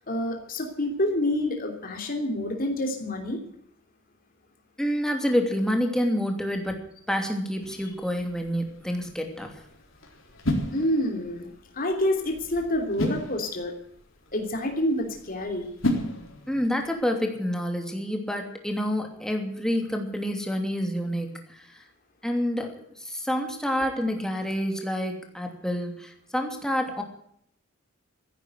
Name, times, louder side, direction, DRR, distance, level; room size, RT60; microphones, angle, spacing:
voice 1, 0.0-3.4 10.7-13.7 14.3-15.7, left 1 dB, 45° left, 3 dB, 3.1 m, -28 dB
voice 2, 4.8-9.6 16.5-21.8 22.2-27.0, equal, 5° left, 3 dB, 2.8 m, -28 dB
sound 1, 7.6-16.9, left 1 dB, 90° left, 4.0 m, -35 dB
15.0 x 11.0 x 8.0 m, 0.68 s
head